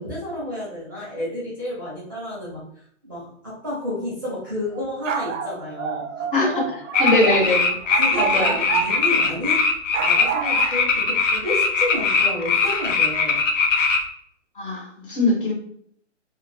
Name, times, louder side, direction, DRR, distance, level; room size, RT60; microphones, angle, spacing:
voice 1, 0.0-6.6 7.2-7.3 7.9-9.7 10.0-13.4, left 1 dB, 20° right, -9 dB, 0.5 m, -31 dB
sound 1, 4.7-9.3 9.9-10.7, right 8 dB, 80° right, 0.5 m, -27 dB
voice 2, 6.3-7.6 8.2-8.6 14.6-15.5, left 2 dB, 45° left, 0 dB, 0.7 m, -22 dB
sound 2, 6.9-14.0, left 4 dB, 80° left, 0.7 m, -20 dB
2.1 x 2.1 x 2.8 m, 0.66 s
hypercardioid pair, 170°, 37 cm